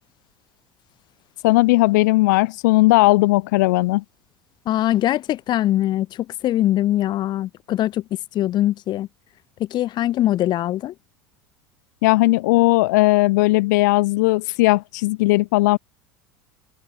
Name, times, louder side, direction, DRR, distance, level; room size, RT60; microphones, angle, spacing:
voice 1, 1.4-4.0 12.0-15.8, left 21 dB, 70° left, 1.5 m, -17 dB
voice 2, 4.7-8.0 8.3-9.1 9.6-10.9, left 13 dB, 45° left, 2.1 m, -22 dB
open air
hypercardioid pair, 75°, 10 cm